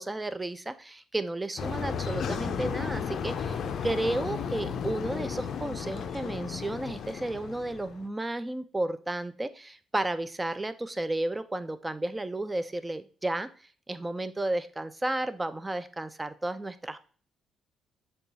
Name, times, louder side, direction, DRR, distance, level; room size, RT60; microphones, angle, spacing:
voice 1, 0.0-13.5 13.9-17.0, right 1 dB, 15° right, 12 dB, 0.4 m, -33 dB
sound 1, 1.6-8.0, left 6 dB, 65° left, 0.4 m, -34 dB
6.6 x 2.3 x 2.7 m, 0.41 s
cardioid pair, 90°, 0 cm